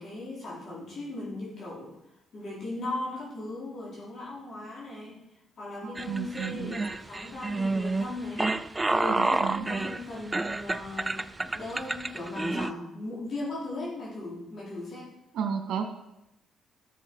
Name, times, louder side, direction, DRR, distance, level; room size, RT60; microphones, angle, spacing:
voice 1, 0.0-2.0 2.3-5.2 5.6-15.1, left 2 dB, 50° left, -6 dB, 4.0 m, -38 dB
voice 2, 5.8-6.7 9.1-9.6 15.3-15.8, right 7 dB, 70° right, 5 dB, 1.7 m, -32 dB
sound 1, 5.9-12.7, right 2 dB, 20° right, 0.5 m, -29 dB
13.5 x 6.9 x 4.7 m, 0.87 s
cardioid pair, 90°, 0 cm